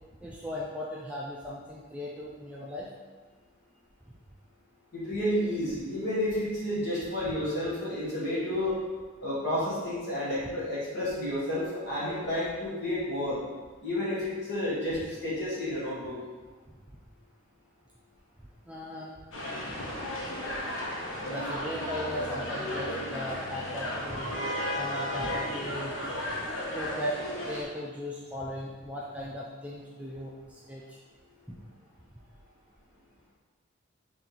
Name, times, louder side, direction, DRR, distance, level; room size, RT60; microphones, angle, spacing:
voice 1, 0.2-2.9 18.7-19.1 19.6-19.8 21.2-24.4 24.8-26.0 26.7-27.2 27.4-31.0 31.5-31.6, left 1 dB, 5° right, -4 dB, 0.3 m, -37 dB
voice 2, 4.9-8.8 9.2-13.4 13.8-16.2, left 1 dB, 50° left, -7 dB, 1.3 m, -31 dB
sound 1, 19.3-27.6, left 1 dB, 70° left, 0.7 m, -34 dB
3.5 x 2.9 x 3.9 m, 1.4 s
head